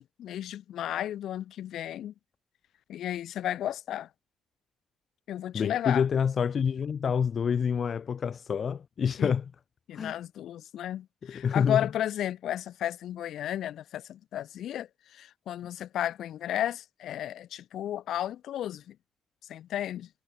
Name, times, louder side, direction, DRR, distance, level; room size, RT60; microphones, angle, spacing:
voice 1, 0.0-2.1 2.9-4.1 5.3-6.0 9.2-9.3 9.9-19.0 19.5-20.1, left 11 dB, 75° left, 4.5 m, -33 dB
voice 2, 5.5-9.5 9.9-10.2 11.3-11.9, left 7 dB, 50° left, 3.4 m, -27 dB
cardioid pair, 90°, 0 cm